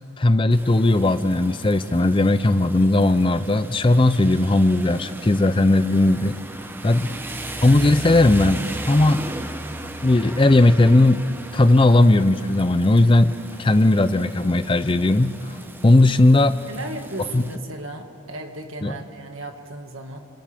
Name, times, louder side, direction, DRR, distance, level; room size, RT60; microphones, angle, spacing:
voice 1, 0.2-6.4 6.8-7.1 7.6-9.2 10.0-11.2 11.5-15.4 15.8-16.6 17.3-17.5 18.8-19.0, left 2 dB, 25° left, 12 dB, 0.5 m, -17 dB
Rain, 0.5-17.6, right 1 dB, 10° right, 0.7 m, -36 dB
voice 2, 6.9-7.3 16.7-20.2, right 2 dB, 75° right, 4 dB, 1.9 m, -36 dB
29.5 x 26.5 x 3.5 m, 2.8 s
head